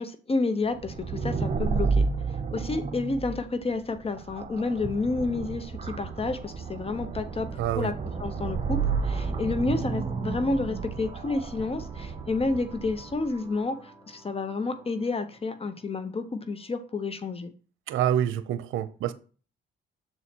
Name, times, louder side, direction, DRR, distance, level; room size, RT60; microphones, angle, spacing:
voice 1, 0.0-2.1 2.5-7.5 7.7-7.9 8.2-17.5, left 3 dB, 30° left, 0.8 m, -30 dB
sound 1, 0.7-13.3, right 4 dB, 35° right, 1.0 m, -31 dB
sound 2, 6.4-17.4, right 3 dB, 15° right, 3.2 m, -51 dB
voice 2, 7.6-7.9 17.9-19.1, right 10 dB, 80° right, 0.6 m, -27 dB
7.0 x 4.2 x 4.4 m
cardioid pair, 90°, 20 cm